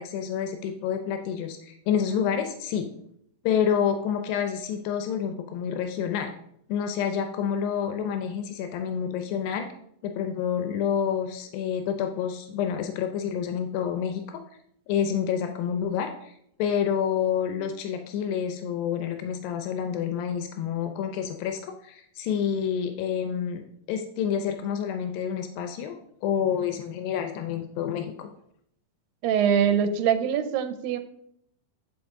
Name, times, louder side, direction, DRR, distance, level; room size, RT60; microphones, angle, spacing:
voice 1, 0.0-2.9 3.4-6.3 6.7-9.7 10.0-14.2 14.9-16.3 16.6-23.6 23.9-28.3, left 8 dB, 90° left, 6 dB, 2.4 m, -28 dB
voice 2, 29.2-31.0, right 8 dB, 90° right, 9 dB, 2.4 m, -23 dB
9.5 x 5.0 x 3.6 m, 0.72 s
omnidirectional pair, 4.0 m